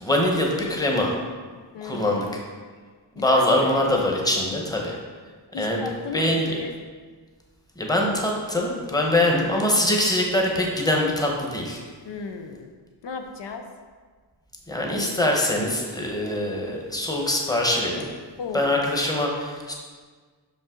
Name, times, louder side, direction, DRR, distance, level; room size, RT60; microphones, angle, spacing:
voice 1, 0.0-1.2 1.8-2.3 3.2-5.0 5.5-5.8 6.1-6.6 7.8-11.8 14.7-18.0 18.5-19.7, left 1 dB, 10° left, -1 dB, 0.9 m, -23 dB
voice 2, 1.7-2.2 3.1-3.7 5.5-6.7 12.0-12.7 13.0-13.6 18.4-18.8, left 4 dB, 75° left, 5 dB, 0.6 m, -35 dB
5.7 x 5.4 x 3.7 m, 1.5 s
wide cardioid pair, 110°, 43 cm